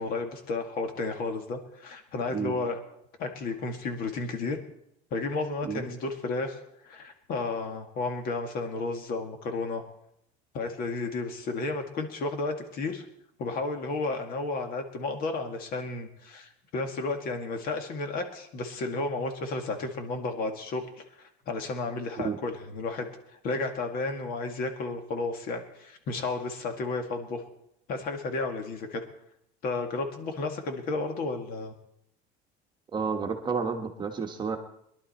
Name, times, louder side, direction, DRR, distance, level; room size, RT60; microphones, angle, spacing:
voice 1, 0.0-2.8 3.2-4.6 5.1-6.6 6.8-9.8 10.5-13.1 13.4-20.8 21.2-23.1 23.4-27.4 27.9-29.0 29.6-31.7, left 3 dB, 50° left, 5 dB, 2.0 m, -32 dB
voice 2, 32.9-34.6, right 5 dB, 25° right, 4 dB, 1.2 m, -31 dB
22.0 x 11.5 x 4.3 m, 0.75 s
cardioid pair, 160°, 19 cm